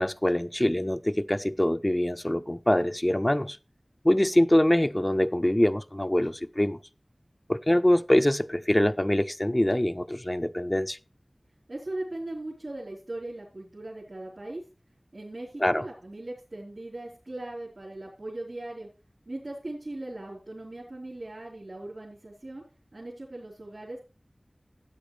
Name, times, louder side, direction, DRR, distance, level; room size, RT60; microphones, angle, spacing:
voice 1, 0.0-3.6 4.0-6.8 7.5-11.0 15.6-15.9, left 1 dB, 25° left, 0.5 m, -24 dB
voice 2, 11.7-14.6 15.1-18.9 19.3-22.6 22.9-24.0, right 2 dB, 70° right, 4.0 m, -39 dB
13.5 x 8.5 x 3.3 m
wide cardioid pair, 45°, 0 cm